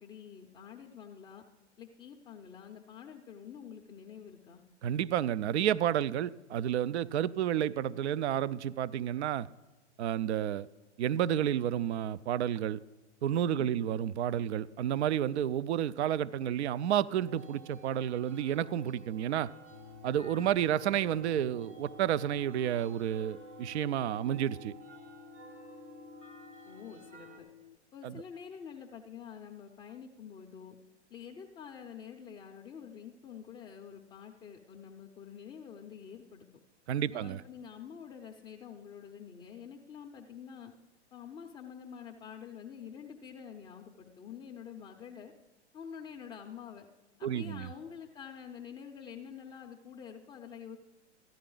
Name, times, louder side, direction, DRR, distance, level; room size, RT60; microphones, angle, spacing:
voice 1, 0.0-1.4 1.8-4.6 13.6-13.9 26.6-27.5 27.9-30.8 31.1-36.5 37.1-40.7 41.1-45.3 45.7-46.9 47.2-50.8, left 7 dB, 10° left, 0.5 m, -47 dB
voice 2, 4.8-9.5 10.0-10.7 11.0-12.8 13.2-19.5 20.0-24.7 28.0-28.2 36.9-37.4 47.2-47.7, right 10 dB, 65° right, 0.5 m, -30 dB
sound 1, 17.3-27.4, right 3 dB, 90° right, 2.2 m, -52 dB
sound 2, 19.7-27.8, left 10 dB, 90° left, 0.5 m, -54 dB
14.0 x 10.0 x 3.9 m
hypercardioid pair, 120°, 36 cm